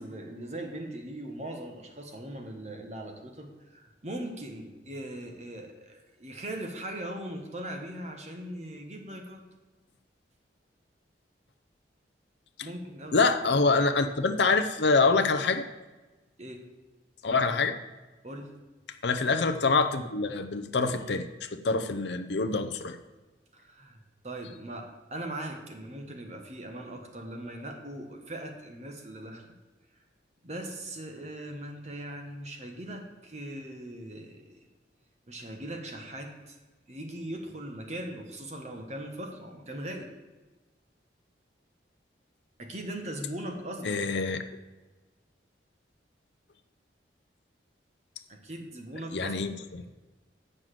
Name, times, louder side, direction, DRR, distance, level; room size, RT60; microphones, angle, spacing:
voice 1, 0.0-9.4 12.6-13.2 16.4-16.7 18.2-18.6 23.5-24.0 24.2-29.4 30.4-34.5 35.3-36.6 36.9-40.1 42.6-44.0 48.3-49.4, right 1 dB, 35° right, 3 dB, 1.3 m, -40 dB
voice 2, 13.1-15.6 17.2-17.8 19.0-23.0 43.8-44.4 49.1-49.8, left 4 dB, 70° left, 8 dB, 0.6 m, -25 dB
7.5 x 6.6 x 7.5 m, 1.2 s
head